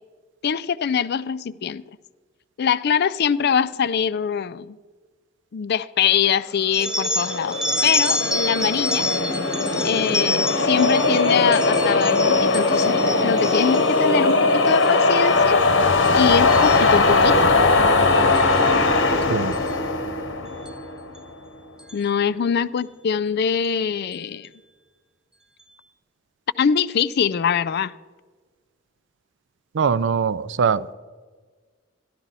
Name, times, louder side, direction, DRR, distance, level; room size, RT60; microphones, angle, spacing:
voice 1, 0.4-1.8 2.6-4.8 5.5-9.1 9.8-15.6 16.1-17.5 21.9-24.5 26.6-27.9, left 7 dB, 55° left, 0.4 m, -23 dB
sound 1, 6.7-14.0 14.5-14.9 15.2-15.6 16.0-17.4 18.3-18.6 19.5-19.7 20.7-20.8 21.1-21.2 21.8-22.0, left 1 dB, 5° right, 0.7 m, -28 dB
sound 2, 6.8-21.1, left 3 dB, 80° left, 1.1 m, -19 dB
voice 2, 29.7-30.9, right 6 dB, 65° right, 0.5 m, -22 dB
13.0 x 12.0 x 4.1 m
head